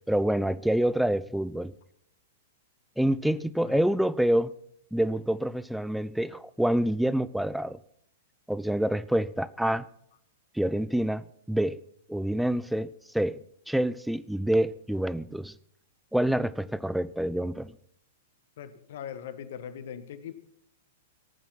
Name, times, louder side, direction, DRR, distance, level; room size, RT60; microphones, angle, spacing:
voice 1, 0.1-1.7 3.0-4.5 4.9-7.8 8.5-9.8 10.6-11.8 12.1-13.4 13.7-15.5 16.1-17.7, right 1 dB, ahead, 0.6 m, -27 dB
voice 2, 18.6-20.3, left 9 dB, 55° left, 1.5 m, -40 dB
17.5 x 9.2 x 5.8 m
figure-of-eight pair, 100°, 0 cm